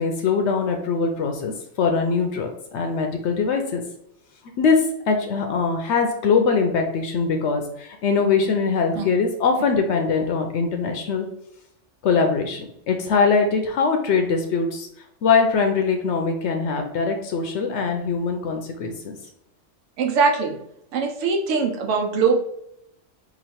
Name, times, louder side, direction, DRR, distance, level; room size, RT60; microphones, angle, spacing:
voice 1, 0.0-1.5 1.8-3.8 4.6-11.3 12.0-14.9 15.2-19.2, left 5 dB, 70° left, 4 dB, 0.8 m, -22 dB
voice 2, 20.0-20.6 20.9-22.4, right 5 dB, 75° right, 1 dB, 1.0 m, -21 dB
3.0 x 2.4 x 4.2 m, 0.75 s
omnidirectional pair, 1.3 m